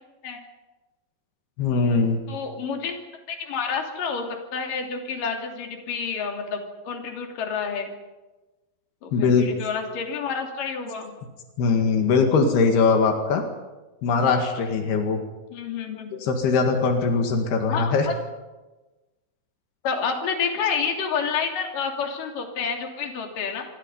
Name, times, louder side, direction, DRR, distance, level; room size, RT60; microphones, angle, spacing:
voice 1, 1.6-2.2 9.1-9.5 11.6-13.4 14.0-15.2 16.2-18.1, left 4 dB, 90° left, 4 dB, 4.1 m, -21 dB
voice 2, 2.3-3.0 3.3-7.9 9.0-11.1 15.5-16.1 17.7-18.1 19.8-23.6, left 6 dB, 60° left, 2 dB, 4.5 m, -29 dB
26.5 x 25.0 x 5.5 m, 1.1 s
omnidirectional pair, 4.4 m